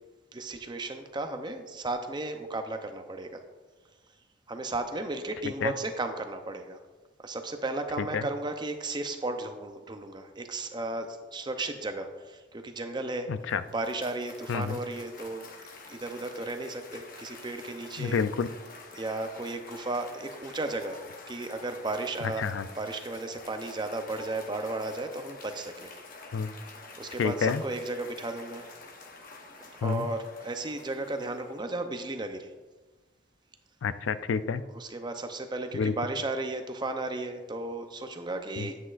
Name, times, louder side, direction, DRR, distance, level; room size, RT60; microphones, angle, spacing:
voice 1, 0.3-3.4 4.5-6.8 7.2-13.3 13.7-15.5 15.9-18.2 18.9-22.4 22.7-25.9 27.0-28.7 29.6-32.5 34.7-38.8, right 2 dB, 25° right, 6 dB, 0.6 m, -34 dB
Cheering / Applause, 13.2-31.8, left 3 dB, 50° left, 0.9 m, -48 dB
voice 2, 13.3-13.6 14.5-14.8 18.0-18.5 22.4-22.7 26.3-26.5 27.2-27.6 29.8-30.1 33.8-34.6 35.7-35.9 38.6-38.7, left 6 dB, 90° left, 13 dB, 0.4 m, -29 dB
9.9 x 8.3 x 2.5 m, 1.2 s
head